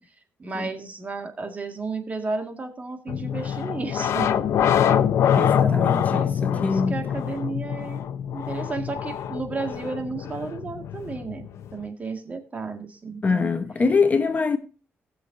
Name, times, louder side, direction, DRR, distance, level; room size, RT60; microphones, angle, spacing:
voice 1, 0.4-4.3 5.3-8.0 8.3-13.5, right 4 dB, 35° right, 1.8 m, -33 dB
sound 1, 3.1-11.8, left 9 dB, 80° left, 0.7 m, -24 dB
voice 2, 5.4-7.0 13.2-14.6, left 4 dB, 35° left, 1.0 m, -24 dB
19.0 x 6.4 x 2.6 m
cardioid pair, 105°, 5 cm